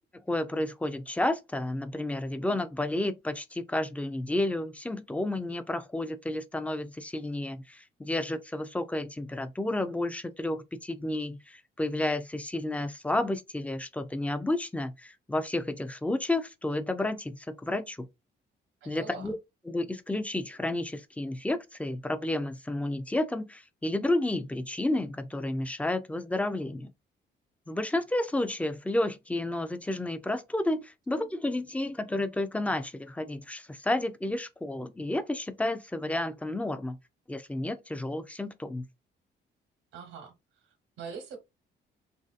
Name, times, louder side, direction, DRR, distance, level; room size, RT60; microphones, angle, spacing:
voice 1, 0.3-18.1 18.9-19.3 19.7-26.9 27.7-37.0 37.3-38.9, left 1 dB, 5° left, 0.4 m, -31 dB
voice 2, 18.8-19.3 39.9-41.4, right 5 dB, 90° right, 1.0 m, -43 dB
3.1 x 2.6 x 2.4 m
cardioid pair, 90°, 20 cm